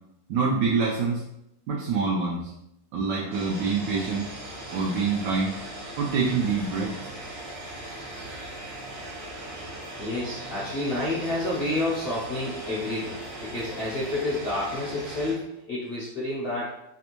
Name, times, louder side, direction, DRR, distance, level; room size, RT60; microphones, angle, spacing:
voice 1, 0.3-1.2 1.7-2.5 2.9-4.3 4.7-5.6 6.0-7.0, right 4 dB, 75° right, -3 dB, 1.1 m, -26 dB
sound 1, 3.3-15.3, right 1 dB, 55° right, 0.7 m, -39 dB
voice 2, 10.0-13.1 13.4-16.8, left 2 dB, 55° left, -9 dB, 0.6 m, -29 dB
3.3 x 2.5 x 2.9 m, 0.85 s
omnidirectional pair, 2.0 m